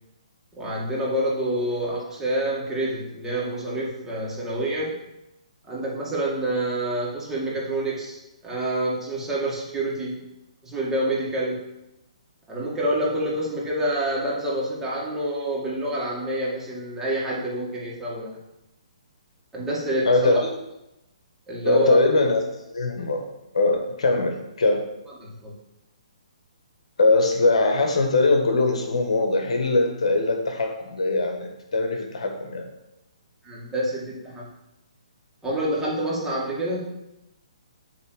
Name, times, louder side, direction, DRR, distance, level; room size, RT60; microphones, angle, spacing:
voice 1, 0.5-5.0 5.7-8.2 8.4-10.2 10.6-11.6 12.5-18.4 19.5-20.4 21.5-22.0 25.2-25.5 33.4-34.5 35.4-36.8, right 1 dB, 10° right, -6 dB, 2.2 m, -27 dB
voice 2, 20.0-20.5 21.6-23.2 23.5-24.8 27.0-32.6, left 2 dB, 65° left, 3 dB, 1.5 m, -22 dB
8.8 x 3.5 x 6.5 m, 0.91 s
figure-of-eight pair, 135°, 4 cm